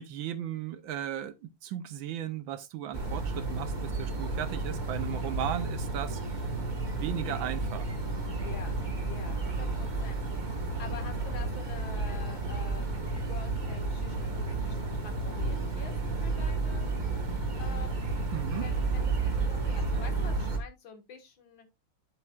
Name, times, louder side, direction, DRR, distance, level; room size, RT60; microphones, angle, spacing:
voice 1, 0.0-6.2 6.9-7.9 18.3-18.6, right 11 dB, 70° right, 1.3 m, -36 dB
sound 1, 2.9-20.6, right 3 dB, 25° right, 1.3 m, -32 dB
voice 2, 6.9-7.5 8.4-8.8 9.1-10.2 10.5-15.9 16.2-16.9 17.6-18.2 18.5-21.7, left 6 dB, 65° left, 2.4 m, -47 dB
9.1 x 7.8 x 2.4 m
omnidirectional pair, 2.4 m